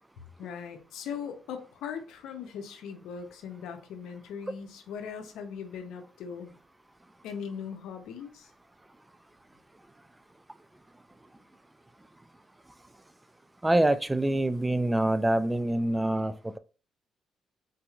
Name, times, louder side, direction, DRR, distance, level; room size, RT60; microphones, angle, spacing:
voice 1, 0.4-6.5 7.2-8.5, left 7 dB, 85° left, 0.7 m, -39 dB
voice 2, 13.6-16.6, right 1 dB, 10° right, 0.3 m, -25 dB
3.9 x 2.8 x 2.4 m
cardioid pair, 90°, 0 cm